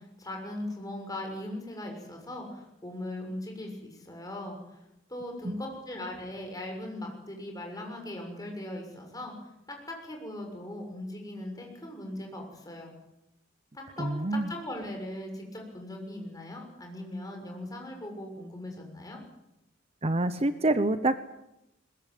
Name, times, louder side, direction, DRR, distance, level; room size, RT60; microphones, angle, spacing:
voice 1, 0.0-4.8 5.1-9.3 10.0-12.9 13.7-19.2, left 1 dB, 20° left, 2 dB, 6.7 m, -39 dB
voice 2, 14.0-14.5 20.0-21.2, right 2 dB, 30° right, 11 dB, 0.9 m, -26 dB
21.5 x 21.5 x 9.3 m, 0.89 s
head